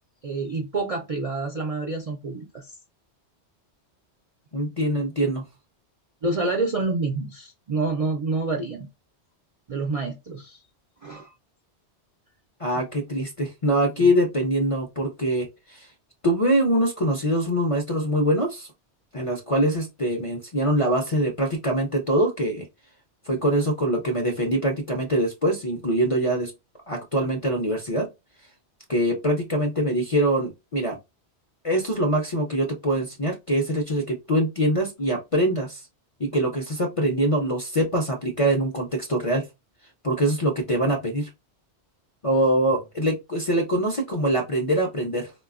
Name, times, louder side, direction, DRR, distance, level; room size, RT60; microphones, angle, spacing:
voice 1, 0.2-2.7 6.2-8.9 9.7-10.6 11.0-11.3 14.0-14.1, right 3 dB, 50° right, 0.4 m, -28 dB
voice 2, 4.5-5.4 12.6-15.9 16.2-18.7 19.1-22.7 23.3-26.5 26.9-28.1 28.9-31.0 31.6-35.8 36.2-39.4 40.0-41.3 42.2-45.3, right 1 dB, 40° left, 0.5 m, -23 dB
4.0 x 2.2 x 2.4 m
omnidirectional pair, 1.2 m